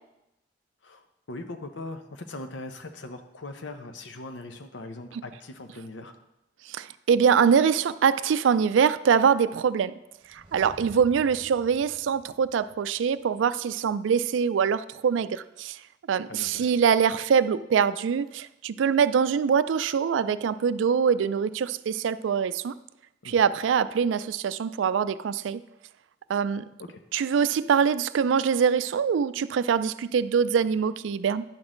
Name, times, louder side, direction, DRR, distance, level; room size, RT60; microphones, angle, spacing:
voice 1, 0.8-6.1 16.3-16.8 23.2-23.4 26.8-27.0, left 2 dB, 85° left, 7 dB, 0.8 m, -40 dB
voice 2, 6.7-9.9 10.3-15.8 16.1-22.7 23.2-25.6 26.3-26.7 27.1-31.4, right 7 dB, 90° right, 15 dB, 0.3 m, -24 dB
sound 1, 10.2-13.1 13.3-13.4, right 1 dB, 30° right, 1.1 m, -50 dB
10.5 x 6.1 x 3.8 m, 0.90 s
head